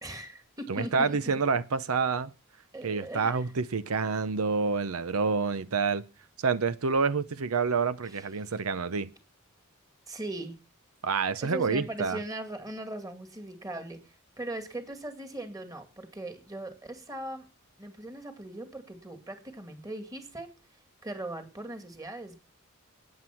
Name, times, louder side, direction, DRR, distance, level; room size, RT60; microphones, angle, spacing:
voice 1, 0.0-1.2 2.7-3.5 8.1-8.5 10.1-10.6 11.4-17.5 17.8-20.5 21.0-22.4, right 1 dB, 15° right, 2.2 m, -39 dB
voice 2, 0.7-2.3 2.8-6.0 6.4-9.1 11.0-12.2, right 5 dB, 90° right, 0.7 m, -28 dB
14.0 x 9.6 x 5.8 m
head